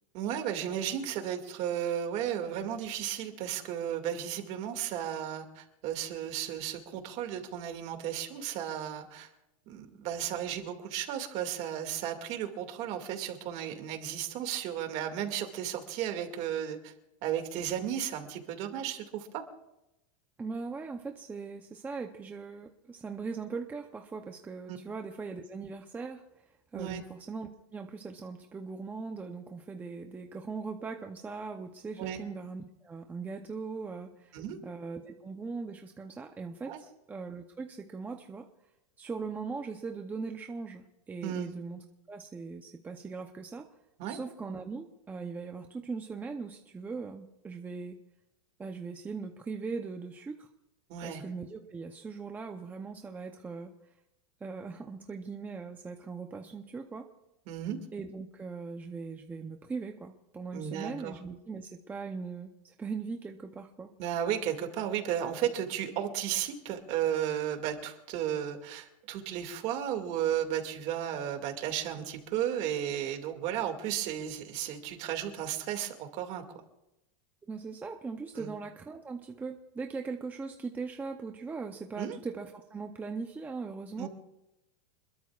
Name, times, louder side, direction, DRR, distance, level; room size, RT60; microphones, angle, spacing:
voice 1, 0.1-9.3 9.7-16.9 17.2-19.4 24.7-24.8 26.7-27.0 32.0-32.2 34.3-34.6 36.7-36.8 41.2-41.5 44.0-44.2 50.9-51.2 57.5-57.8 60.5-61.1 64.0-76.4 78.4-78.5 82.0-82.2 84.0-84.1, right 10 dB, 40° right, 6 dB, 2.2 m, -34 dB
voice 2, 20.4-34.4 34.6-38.5 39.0-43.7 44.1-48.0 48.6-50.5 51.0-53.7 54.4-57.1 57.9-63.9 77.5-84.1, right 4 dB, 10° right, 4 dB, 0.6 m, -40 dB
27.0 x 21.5 x 2.4 m, 0.91 s
supercardioid pair, 160°, 19 cm